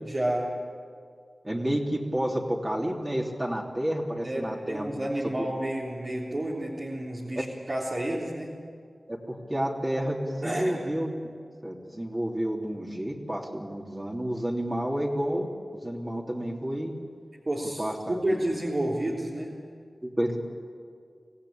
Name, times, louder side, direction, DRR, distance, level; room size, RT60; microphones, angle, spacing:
voice 1, 0.1-0.5 4.2-8.5 10.4-10.8 17.5-19.5, right 1 dB, 50° right, -5 dB, 3.5 m, -30 dB
voice 2, 1.4-5.3 7.3-7.4 9.1-11.3 11.6-15.5 15.8-16.9 17.8-18.4 20.0-20.4, right 1 dB, 25° right, -3 dB, 3.2 m, -30 dB
26.0 x 16.5 x 8.8 m, 2.2 s
cardioid pair, 45°, 0 cm